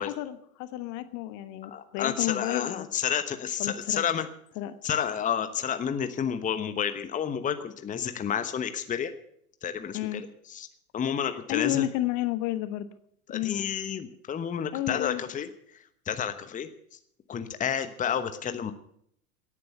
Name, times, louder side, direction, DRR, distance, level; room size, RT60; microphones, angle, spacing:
voice 1, 0.0-2.9 3.6-4.0 4.6-4.7 9.9-10.2 11.2-12.9 13.3-13.6 14.7-15.2, left 14 dB, 40° left, 13 dB, 1.3 m, -31 dB
voice 2, 1.7-4.3 4.8-9.1 9.6-10.3 10.5-10.7 10.9-11.9 13.3-15.5 16.1-16.7 17.3-18.7, left 8 dB, 20° left, 10 dB, 1.1 m, -30 dB
17.5 x 9.8 x 6.8 m, 0.68 s
figure-of-eight pair, 90°, 43 cm